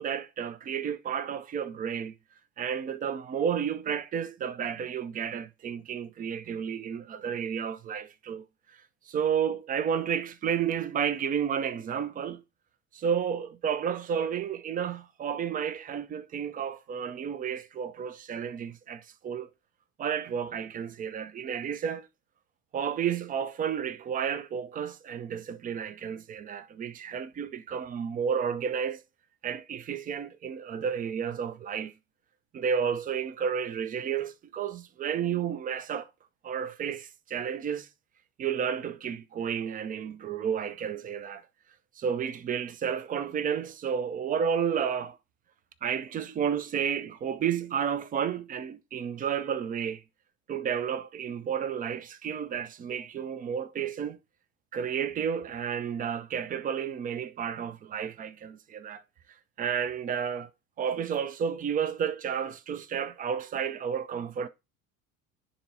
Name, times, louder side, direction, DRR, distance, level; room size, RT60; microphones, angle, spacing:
voice 1, 0.0-2.1 2.6-8.5 8.7-12.4 12.9-19.5 20.0-22.1 22.7-29.0 29.4-31.9 32.5-36.1 36.4-37.9 38.4-41.4 42.0-45.2 45.8-50.0 50.5-54.2 54.7-59.0 59.6-60.5 60.8-64.5, right 7 dB, 20° right, 0.4 m, -31 dB
11.0 x 3.7 x 2.7 m
figure-of-eight pair, 70°, 44 cm